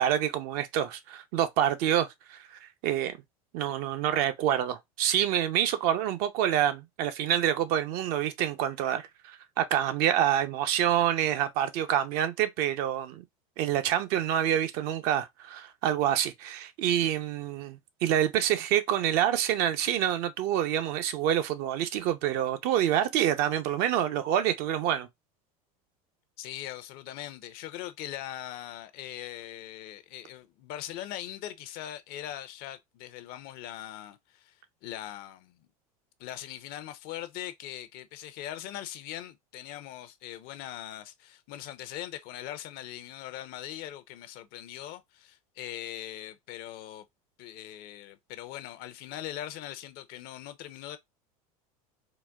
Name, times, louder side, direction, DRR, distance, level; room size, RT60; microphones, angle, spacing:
voice 1, 0.0-3.2 3.5-13.2 13.6-25.1, right 11 dB, 60° right, 0.5 m, -27 dB
voice 2, 26.4-35.7 36.2-47.1 47.4-51.0, left 12 dB, 55° left, 0.5 m, -41 dB
3.9 x 2.2 x 2.2 m
hypercardioid pair, 85°, 19 cm